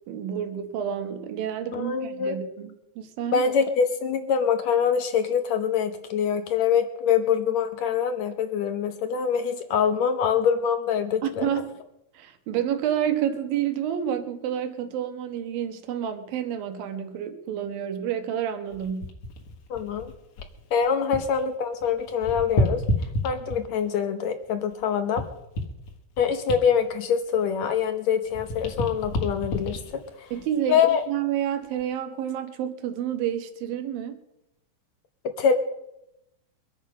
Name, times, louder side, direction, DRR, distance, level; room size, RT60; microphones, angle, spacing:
voice 1, 0.1-3.4 11.2-11.8 12.1-19.1 30.3-34.2, right 9 dB, 80° right, 8 dB, 3.0 m, -29 dB
voice 2, 1.7-2.4 3.3-11.5 19.7-20.1 20.7-22.8 23.2-25.2 26.2-30.3 30.7-31.0 35.4-35.6, left 7 dB, 70° left, 8 dB, 1.7 m, -24 dB
sound 1, 18.7-21.4 21.7-23.9 24.4-28.0 28.2-31.0 31.6-31.8, left 1 dB, 55° left, 2.7 m, -31 dB
23.0 x 8.8 x 5.2 m, 0.87 s
omnidirectional pair, 4.1 m